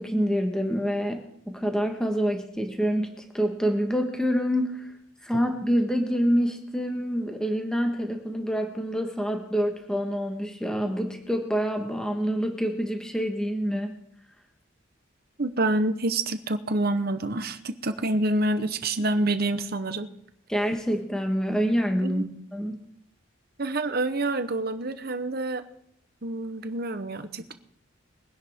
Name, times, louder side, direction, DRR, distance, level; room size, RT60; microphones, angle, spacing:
voice 1, 0.0-4.9 5.2-13.9 20.5-22.3 22.5-22.8, equal, 5° left, 3 dB, 1.4 m, -26 dB
voice 2, 15.4-20.1 22.0-22.3 23.6-25.6 26.2-27.5, right 2 dB, 45° right, 10 dB, 1.0 m, -27 dB
22.5 x 10.5 x 3.7 m, 0.69 s
head